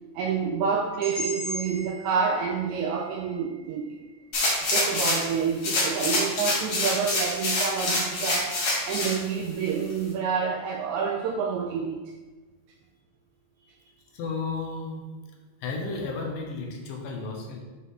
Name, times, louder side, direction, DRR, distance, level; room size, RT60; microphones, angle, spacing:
voice 1, 0.1-4.0 4.6-8.5 8.9-12.1, right 6 dB, 80° right, 1 dB, 1.7 m, -28 dB
sound 1, 1.0-5.0, left 1 dB, 40° right, 2.7 m, -39 dB
sound 2, 4.3-5.3 5.6-9.2 9.7-9.8, left 2 dB, 55° left, 2.1 m, -26 dB
voice 2, 14.1-15.1 15.6-17.6, left 3 dB, 85° left, 1 dB, 2.6 m, -33 dB
7.2 x 4.1 x 3.6 m, 1.3 s
omnidirectional pair, 3.7 m